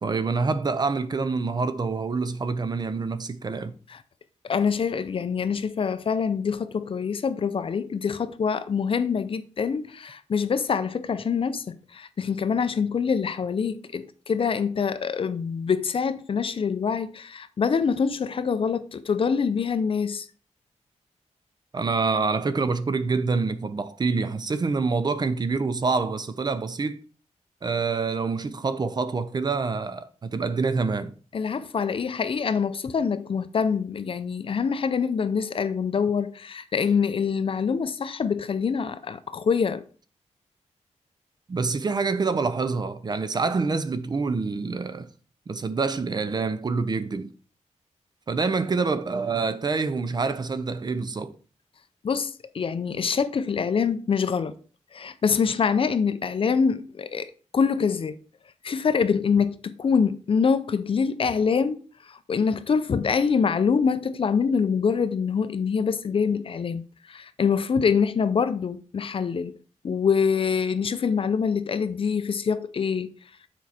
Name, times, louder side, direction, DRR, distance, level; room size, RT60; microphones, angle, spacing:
voice 1, 0.0-3.7 21.7-27.0 27.6-31.1 41.5-45.1 45.5-47.3 48.3-51.3, right 4 dB, 35° right, 0.5 m, -26 dB
voice 2, 4.4-20.3 31.3-39.8 52.0-54.6 54.9-58.2 58.6-61.8 62.1-66.8 67.1-69.6 69.8-73.1, left 6 dB, 50° left, 0.5 m, -25 dB
7.1 x 4.6 x 4.2 m
wide cardioid pair, 145°, 12 cm